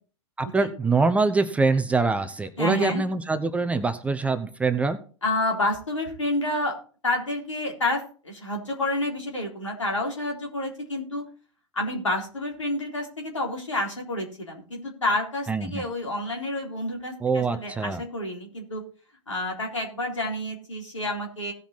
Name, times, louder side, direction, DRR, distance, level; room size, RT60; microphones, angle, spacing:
voice 1, 0.4-5.0 15.5-15.8 17.2-18.0, right 3 dB, 10° right, 10 dB, 0.6 m, -24 dB
voice 2, 2.6-3.0 5.2-6.7 7.0-11.2 11.7-18.8 19.3-21.5, left 1 dB, 75° left, 0 dB, 3.8 m, -29 dB
17.5 x 5.8 x 4.1 m, 0.39 s
figure-of-eight pair, 100°, 16 cm